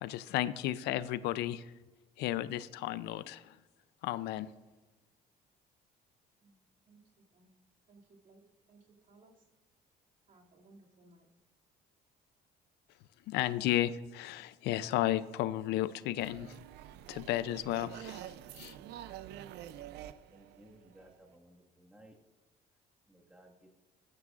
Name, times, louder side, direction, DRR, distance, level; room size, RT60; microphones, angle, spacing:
voice 1, 0.0-1.6 2.2-3.5 4.0-4.5 13.3-16.5 17.1-18.2 18.5-18.8, left 14 dB, 85° left, 15 dB, 0.5 m, -33 dB
voice 2, 6.9-7.5 7.9-8.4 8.7-8.8 9.1-9.3 10.3-11.3, right 2 dB, 50° right, -2 dB, 2.5 m, -61 dB
sound 1, 16.2-21.4, right 12 dB, 80° right, 0.5 m, -47 dB
voice 3, 20.3-22.1 23.1-23.7, right 1 dB, 5° right, 0 dB, 1.7 m, -59 dB
14.0 x 11.0 x 2.5 m, 1.1 s
cardioid pair, 110°, 17 cm